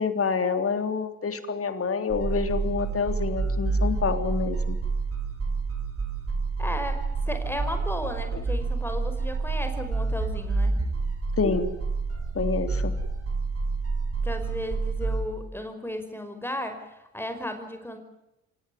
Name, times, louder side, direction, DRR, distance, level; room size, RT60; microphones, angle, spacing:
voice 1, 0.0-4.8 8.3-8.4 11.4-11.7 12.4-12.9, left 5 dB, 40° left, 8 dB, 3.6 m, -27 dB
sound 1, 2.1-15.2, right 3 dB, 40° right, 6.2 m, -28 dB
voice 2, 6.6-10.8 14.2-18.0, left 1 dB, 5° left, 7 dB, 5.3 m, -34 dB
26.5 x 18.0 x 9.5 m, 0.90 s
supercardioid pair, 65°, 35 cm